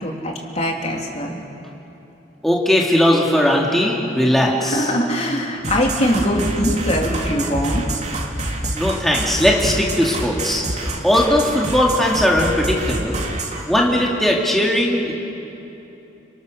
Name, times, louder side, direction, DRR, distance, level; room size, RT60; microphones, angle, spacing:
voice 1, 0.0-1.4 4.6-7.8, equal, 35° left, 0 dB, 3.4 m, -22 dB
voice 2, 2.4-4.9 8.7-13.2 13.7-15.1, left 1 dB, ahead, -3 dB, 2.5 m, -18 dB
sound 1, 5.6-13.6, right 1 dB, 40° right, 3.2 m, -26 dB
30.0 x 28.0 x 6.7 m, 3.0 s
head